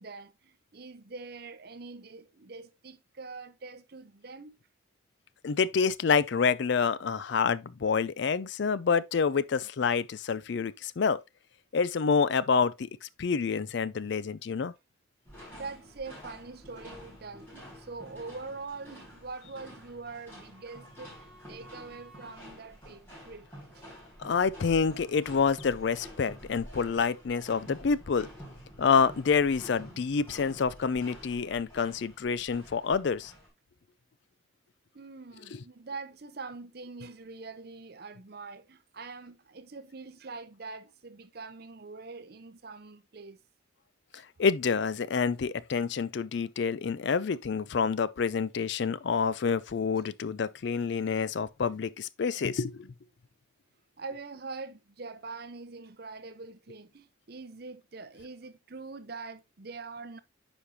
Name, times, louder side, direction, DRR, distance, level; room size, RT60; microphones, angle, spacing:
voice 1, 0.0-4.6 15.5-23.5 23.7-23.8 34.9-43.4 44.1-44.2 54.0-60.2, right 4 dB, 50° right, 0.7 m, -44 dB
voice 2, 5.4-11.2 11.7-12.9 13.2-14.7 24.2-28.3 28.8-33.3 44.4-52.9, left 5 dB, 60° left, 0.4 m, -27 dB
sound 1, 15.2-33.5, equal, 10° left, 4.7 m, -49 dB
9.6 x 5.2 x 2.8 m
head